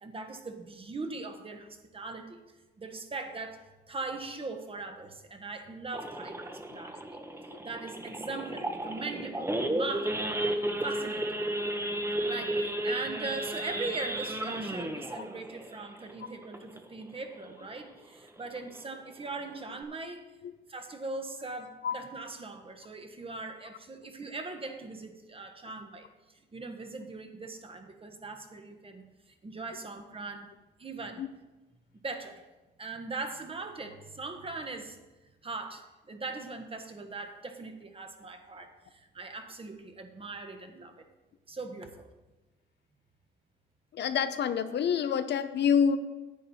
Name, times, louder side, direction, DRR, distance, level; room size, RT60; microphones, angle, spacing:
voice 1, 0.0-2.4 2.8-3.6 3.9-7.2 7.6-10.3 10.8-11.4 12.2-20.3 20.7-26.1 26.5-29.1 29.4-30.5 30.8-31.2 32.0-32.4 32.8-35.0 35.4-41.0 41.5-42.1, right 3 dB, 30° right, 6 dB, 1.3 m, -40 dB
Idling / Accelerating revving vroom / Sawing, 5.9-17.0 17.4-17.6 17.9-18.0 18.4-18.7 19.2-19.3 19.5-19.8, right 1 dB, 10° right, 1.0 m, -33 dB
voice 2, 43.9-46.0, left 7 dB, 60° left, 10 dB, 0.7 m, -27 dB
10.0 x 8.6 x 4.2 m, 1.1 s
cardioid pair, 90°, 20 cm